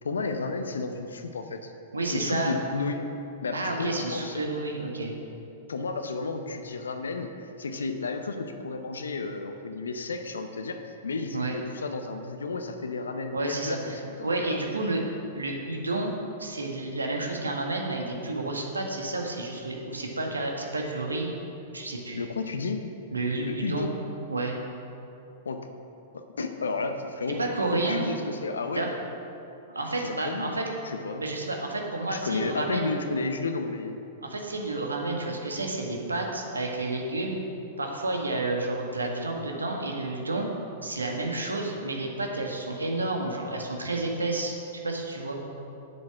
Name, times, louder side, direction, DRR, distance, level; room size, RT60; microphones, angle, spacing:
voice 1, 0.0-1.7 2.0-3.1 3.4-4.4 5.7-14.7 22.2-22.8 23.4-24.0 25.4-25.7 26.1-28.9 30.0-31.2 32.1-34.0, left 3 dB, 75° left, 7 dB, 0.7 m, -32 dB
voice 2, 1.9-2.5 3.5-5.1 11.3-11.6 13.3-14.0 14.2-15.0 15.4-16.1 16.4-21.3 21.7-22.2 23.1-23.9 24.3-24.6 27.4-28.1 28.7-28.9 29.7-30.7 31.2-32.9 34.2-37.4 37.8-40.5 40.8-44.5 44.8-45.4, right 2 dB, 85° right, 1 dB, 1.5 m, -30 dB
8.7 x 7.9 x 5.9 m, 2.8 s
figure-of-eight pair, 100°, 0 cm